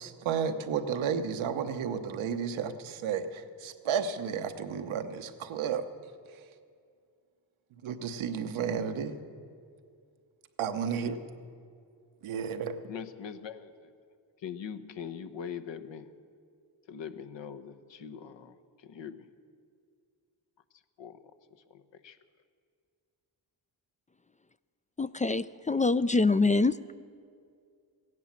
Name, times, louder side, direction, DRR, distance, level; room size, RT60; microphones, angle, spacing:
voice 1, 0.0-5.9 7.8-9.2 10.6-11.2 12.2-12.8, right 7 dB, 85° right, 8 dB, 1.0 m, -32 dB
voice 2, 12.9-13.9 14.4-16.1 16.9-19.3 21.0-21.2 21.7-22.2, left 7 dB, 65° left, 9 dB, 1.0 m, -42 dB
voice 3, 25.0-26.8, left 3 dB, 20° left, 15 dB, 0.4 m, -25 dB
15.5 x 11.0 x 7.4 m, 2.2 s
supercardioid pair, 50°, 47 cm